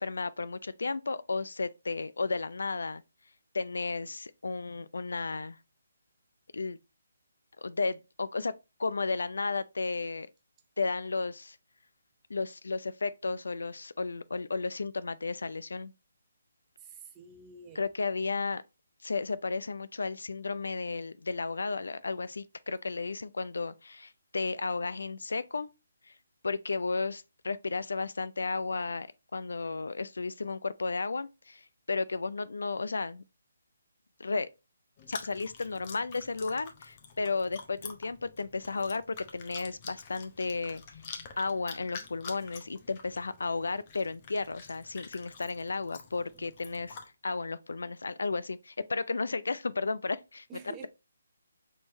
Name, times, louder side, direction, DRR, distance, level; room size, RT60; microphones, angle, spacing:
voice 1, 0.0-3.0 3.5-5.6 6.5-6.8 7.6-8.5 8.8-10.3 10.8-11.6 12.3-15.9 17.7-18.6 19.0-25.7 26.1-26.2 26.4-33.2 34.2-34.5 35.1-40.8 41.4-50.5, left 4 dB, 75° left, 0.3 m, -33 dB
voice 2, 16.8-17.8 46.1-46.5 50.5-50.9, right 6 dB, 15° right, 0.6 m, -49 dB
Chewing mastication, 35.0-47.1, left 5 dB, 35° left, 0.7 m, -48 dB
4.3 x 3.2 x 3.0 m
figure-of-eight pair, 155°, 0 cm